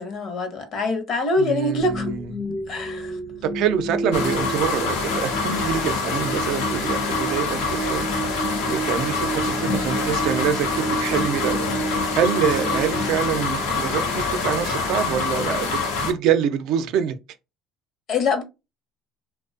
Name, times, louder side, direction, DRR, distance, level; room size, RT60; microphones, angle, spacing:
voice 1, 0.0-2.1 2.7-3.2 18.1-18.4, left 2 dB, 55° left, 0.8 m, -24 dB
voice 2, 1.4-2.3 3.4-15.7 16.0-17.2, right 8 dB, 70° right, 0.4 m, -26 dB
sound 1, 1.8-14.0, right 2 dB, 10° right, 0.5 m, -31 dB
sound 2, 4.1-16.1, left 4 dB, 90° left, 0.7 m, -25 dB
2.4 x 2.2 x 2.4 m
supercardioid pair, 95°, 0 cm